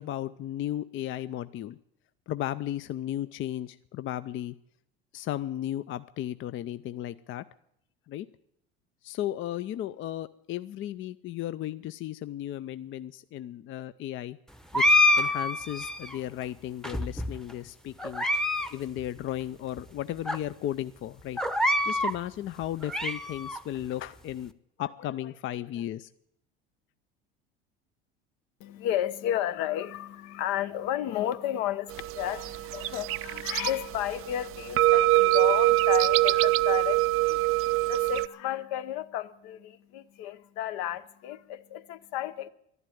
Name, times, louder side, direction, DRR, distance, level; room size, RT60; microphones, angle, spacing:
voice 1, 0.0-1.8 2.3-4.5 5.1-7.4 8.1-8.3 9.0-14.4 14.7-18.3 18.7-21.4 21.8-24.5 24.8-26.1, left 12 dB, 40° left, 0.5 m, -35 dB
sound 1, 14.7-16.2 16.8-17.5 18.0-18.7 19.0-19.1 19.8-19.9 20.3-20.4 21.4-22.2 22.6-23.6, left 1 dB, ahead, 0.8 m, -26 dB
voice 2, 28.6-42.5, left 12 dB, 65° left, 0.9 m, -33 dB
sound 2, 31.9-38.3, right 19 dB, 45° right, 0.5 m, -24 dB
12.0 x 11.0 x 9.2 m
hypercardioid pair, 85°, 30 cm